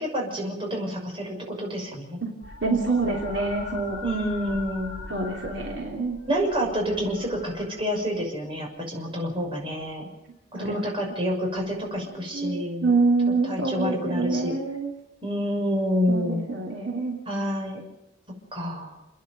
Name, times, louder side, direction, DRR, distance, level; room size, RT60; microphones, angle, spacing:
voice 1, 0.0-2.2 4.0-4.9 6.3-10.1 10.5-12.9 13.5-14.5 15.2-16.4 17.3-17.8 18.5-18.9, equal, 25° right, -1 dB, 6.3 m, -28 dB
sound 1, 2.4-8.2 9.4-9.9 11.7-11.8, left 3 dB, 25° left, 5.5 m, -41 dB
voice 2, 2.6-4.0 4.5-4.6 5.1-6.2 10.5-10.8 12.3-14.9 16.1-17.2, right 3 dB, 65° right, 0 dB, 3.0 m, -26 dB
30.0 x 10.5 x 9.4 m, 0.85 s
head